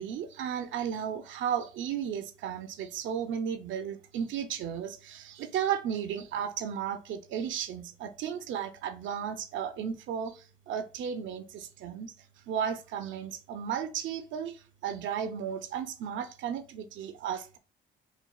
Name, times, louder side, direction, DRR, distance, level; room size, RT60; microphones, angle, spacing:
voice 1, 0.0-12.1 12.5-17.6, right 8 dB, 75° right, 0.4 m, -34 dB
4.1 x 2.2 x 2.2 m
cardioid pair, 90°, 20 cm